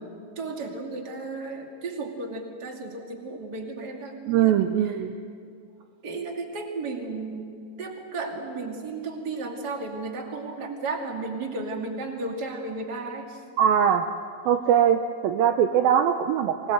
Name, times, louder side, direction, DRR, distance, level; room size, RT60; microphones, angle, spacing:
voice 1, 0.4-4.7 6.0-7.5 7.8-13.4, right 3 dB, 30° right, 1 dB, 2.1 m, -34 dB
voice 2, 4.3-5.1 13.6-14.1 14.5-16.7, right 9 dB, 80° right, 6 dB, 2.1 m, -21 dB
24.0 x 19.5 x 8.0 m, 2.4 s
omnidirectional pair, 5.1 m